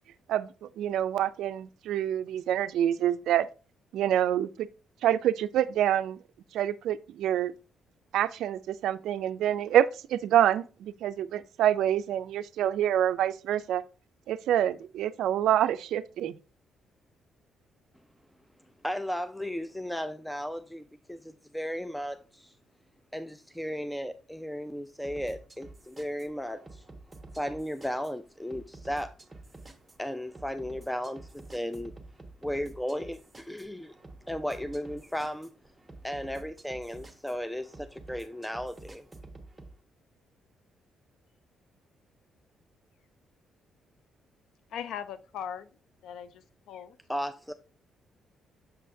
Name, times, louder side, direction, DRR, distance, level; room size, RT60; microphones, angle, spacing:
voice 1, 0.3-3.5 3.9-4.7 5.0-6.2 6.5-7.5 8.1-13.8 14.3-16.3, right 11 dB, 80° right, 0.3 m, -27 dB
voice 2, 18.8-22.5 23.1-26.8 27.4-29.1 30.0-31.9 32.4-33.9 34.3-35.5 36.0-39.0 47.1-47.5, equal, 5° left, 0.4 m, -35 dB
sound 1, 25.0-39.7, right 2 dB, 15° right, 1.2 m, -49 dB
voice 3, 44.7-45.7 46.0-47.0, left 8 dB, 80° left, 0.4 m, -39 dB
6.9 x 5.5 x 2.6 m
cardioid pair, 90°, 0 cm